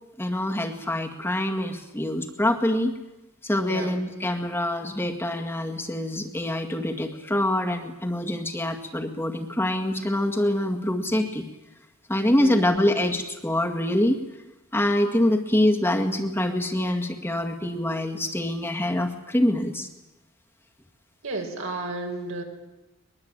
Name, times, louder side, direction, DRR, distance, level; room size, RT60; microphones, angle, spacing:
voice 1, 0.2-2.9 3.4-11.4 12.1-14.2 14.7-19.9, left 1 dB, 10° left, 2 dB, 2.0 m, -25 dB
voice 2, 12.4-12.7 21.2-22.4, right 2 dB, 65° right, 2 dB, 5.3 m, -32 dB
22.5 x 21.5 x 9.0 m, 1.0 s
head